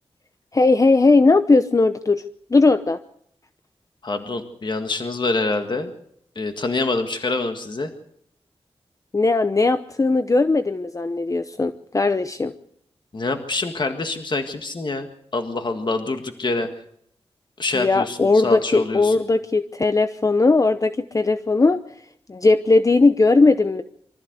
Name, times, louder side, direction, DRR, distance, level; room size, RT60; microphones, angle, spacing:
voice 1, 0.5-2.2 2.5-3.0 9.1-12.5 17.7-21.8 22.3-23.8, left 3 dB, 30° left, 11 dB, 0.8 m, -18 dB
voice 2, 4.0-5.9 6.4-7.9 13.1-15.1 15.3-16.7 17.6-19.2, left 3 dB, 50° left, 6 dB, 1.8 m, -25 dB
24.5 x 14.0 x 8.0 m, 0.71 s
wide cardioid pair, 85°, 10 cm